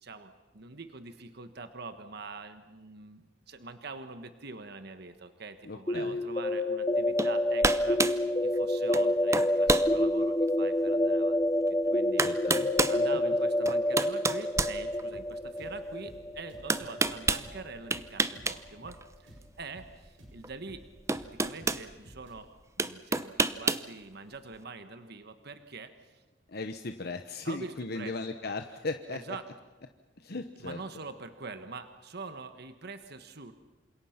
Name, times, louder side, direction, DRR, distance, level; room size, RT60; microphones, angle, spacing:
voice 1, 0.0-11.4 11.9-12.3 12.9-20.8 21.3-22.5 22.8-26.2 27.4-28.2 29.1-29.5 30.6-33.5, right 3 dB, 55° right, 9 dB, 1.3 m, -44 dB
voice 2, 5.7-6.2 12.2-12.7 26.5-29.2 30.2-30.8, left 3 dB, 55° left, 6 dB, 1.1 m, -37 dB
sound 1, 5.9-17.6, left 1 dB, 20° left, 0.7 m, -28 dB
sound 2, 7.2-7.3 7.6-8.2 8.9-9.1 9.3-9.9 10.5-10.6 11.7-11.8 12.2-13.0 13.7-15.3 16.7-17.5 17.9-18.6 18.9-19.0 20.4-20.5 21.1-21.8 22.8-23.9, right 3 dB, 15° right, 0.7 m, -28 dB
sound 3, 15.1-22.4, equal, 85° right, 7.2 m, -53 dB
28.5 x 26.5 x 5.9 m, 1.2 s
head